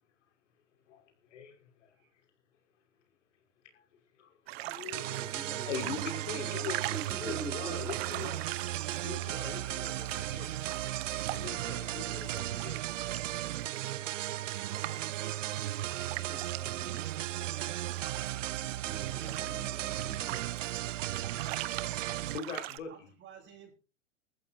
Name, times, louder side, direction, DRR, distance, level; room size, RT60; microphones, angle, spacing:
voice 1, 1.3-1.9 3.7-3.8 4.2-4.3 4.6-5.2 5.7-6.8 7.1-8.5 9.0-10.5 11.3-12.8 13.2-13.5 19.2-19.6 22.3-23.1, left 6 dB, 70° left, 5 dB, 5.6 m, -42 dB
sound 1, 4.5-22.8, right 17 dB, 55° right, 1.2 m, -43 dB
sound 2, 4.9-22.4, right 14 dB, 75° right, 0.7 m, -36 dB
voice 2, 5.1-8.3 16.1-17.0 18.6-20.5, right 3 dB, 5° right, 5 dB, 3.8 m, -46 dB
voice 3, 14.6-15.6 22.9-23.7, right 8 dB, 30° right, -4 dB, 7.6 m, -53 dB
21.0 x 14.5 x 2.9 m, 0.34 s
hypercardioid pair, 125°, 38 cm